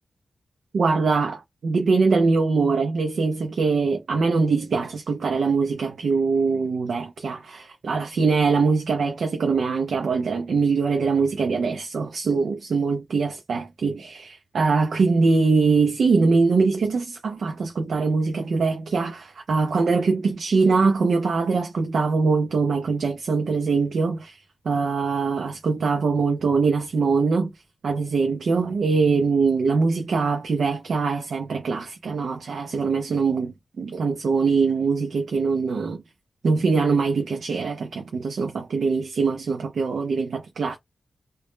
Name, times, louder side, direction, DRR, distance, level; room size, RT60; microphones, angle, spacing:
voice 1, 0.7-24.4 24.6-27.5 27.8-36.0 36.4-40.8, right 4 dB, 75° right, 0.4 m, -22 dB
2.1 x 2.0 x 3.0 m
wide cardioid pair, 125°, 0 cm